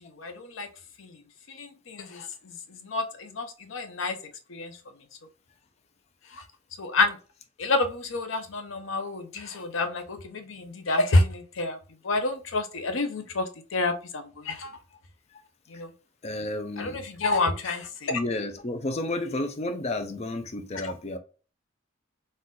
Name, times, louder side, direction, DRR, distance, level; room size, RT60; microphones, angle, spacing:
voice 1, 0.2-0.7 1.0-1.1 1.5-2.3 2.8-4.2 4.5-4.7 6.8-7.2 7.6-11.8 12.0-14.7 15.7-15.9 16.8-18.1, left 2 dB, 85° left, 0.7 m, -28 dB
voice 2, 16.2-17.0 18.1-21.2, left 2 dB, 35° left, 0.5 m, -31 dB
4.2 x 2.5 x 3.8 m
head